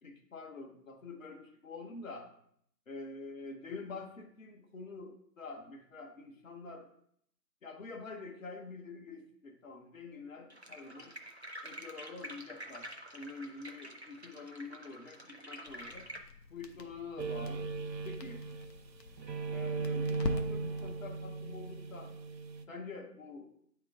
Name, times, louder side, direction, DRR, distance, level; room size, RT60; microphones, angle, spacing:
voice 1, 0.0-2.3 2.9-6.9 7.6-11.2 11.6-16.1 16.5-17.7 18.0-18.4 19.5-22.1 22.7-23.5, left 3 dB, 55° left, 2 dB, 0.9 m, -46 dB
sound 1, 10.5-16.2, right 1 dB, 45° right, 0.5 m, -48 dB
Crackle, 15.7-21.0, left 3 dB, 80° left, 0.8 m, -44 dB
sound 2, 17.2-18.9 19.2-22.6, right 4 dB, 90° right, 0.7 m, -37 dB
8.7 x 2.9 x 3.6 m, 0.67 s
figure-of-eight pair, 170°, 49 cm